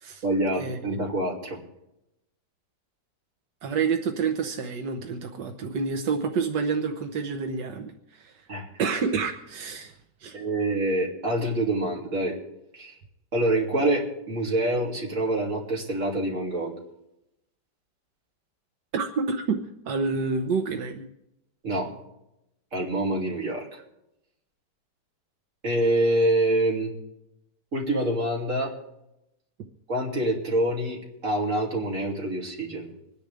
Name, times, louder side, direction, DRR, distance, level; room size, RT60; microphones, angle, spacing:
voice 1, 0.2-1.6 8.5-8.7 10.3-12.4 12.7-12.9 13.3-16.8 21.6-21.9 22.7-23.8 25.6-26.9 27.7-28.7 29.9-32.9, right 1 dB, 45° right, -2 dB, 3.2 m, -26 dB
voice 2, 3.6-8.3 8.8-9.9 10.2-10.4 18.9-19.6 19.9-21.0, right 5 dB, 85° right, 4 dB, 1.6 m, -28 dB
26.0 x 10.5 x 3.5 m, 0.86 s
omnidirectional pair, 1.8 m